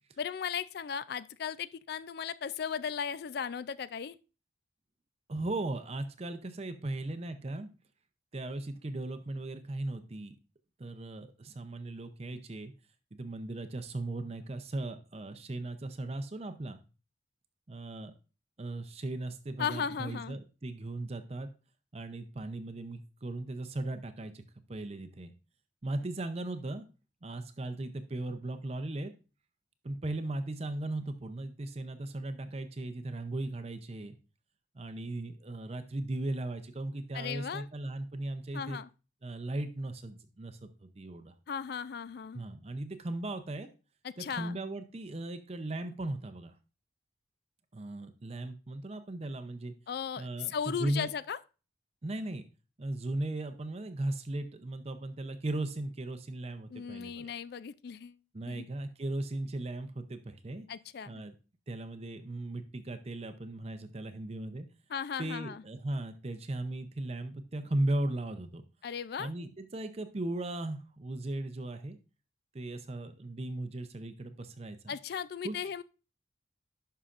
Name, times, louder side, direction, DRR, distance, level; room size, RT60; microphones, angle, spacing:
voice 1, 0.2-4.2 19.6-20.4 37.1-37.7 38.5-38.9 41.5-42.4 44.0-44.6 49.9-51.4 56.7-58.2 58.5-58.7 60.7-61.1 64.9-65.6 68.8-69.3 74.9-75.8, left 7 dB, 55° left, 0.3 m, -36 dB
voice 2, 5.3-7.7 8.3-10.4 10.8-12.7 13.1-16.8 17.7-18.1 18.6-21.5 21.9-24.4 24.7-25.3 25.8-26.9 27.2-29.1 29.8-34.2 34.7-38.8 39.2-41.3 42.3-43.7 44.2-46.5 47.7-49.7 50.2-51.1 52.0-52.4 52.8-57.3 58.3-60.7 61.1-61.3 61.7-64.7 65.2-68.6 69.2-72.0 72.5-75.0 75.4-75.6, right 2 dB, 30° right, 0.6 m, -37 dB
11.0 x 5.6 x 2.5 m
head